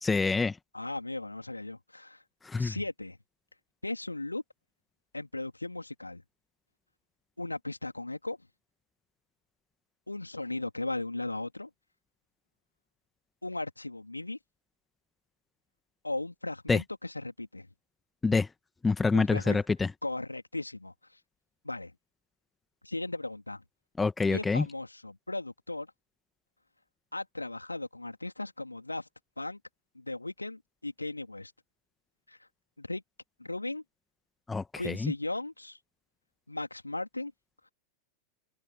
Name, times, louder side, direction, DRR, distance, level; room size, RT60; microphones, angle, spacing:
voice 1, 0.0-0.5 2.5-2.8 16.7-16.8 18.2-18.5 18.8-19.9 24.0-24.7 34.5-35.1, left 4 dB, 10° left, 2.0 m, -26 dB
voice 2, 0.7-2.2 2.6-3.2 3.8-4.4 5.1-6.2 7.4-8.4 10.1-11.7 13.4-14.4 16.0-17.7 19.1-19.6 20.0-20.9 21.6-21.9 22.8-23.6 24.3-25.9 27.1-29.1 29.4-29.6 30.0-31.5 32.3-32.4 32.8-33.0 33.4-33.8 34.8-35.8 36.5-37.3, left 2 dB, 85° left, 3.5 m, -37 dB
open air
figure-of-eight pair, 90°, 0 cm